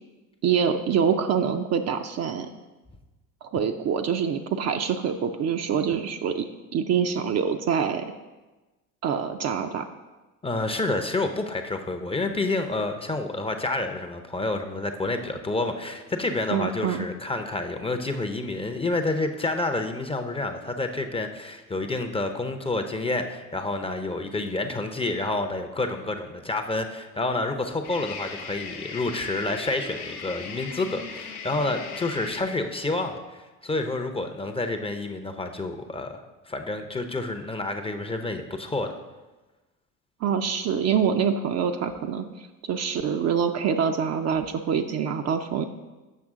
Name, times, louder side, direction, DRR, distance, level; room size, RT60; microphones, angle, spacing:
voice 1, 0.4-2.5 3.4-6.5 6.7-8.1 9.0-9.9 16.5-17.1 40.2-45.6, right 7 dB, 40° right, 6 dB, 0.5 m, -25 dB
voice 2, 10.4-38.9, left 2 dB, 15° left, 5 dB, 0.5 m, -29 dB
sound 1, 15.2-20.8 27.8-32.4, left 5 dB, 90° left, 0.8 m, -41 dB
7.4 x 6.0 x 3.6 m, 1.2 s
hypercardioid pair, 65°, 44 cm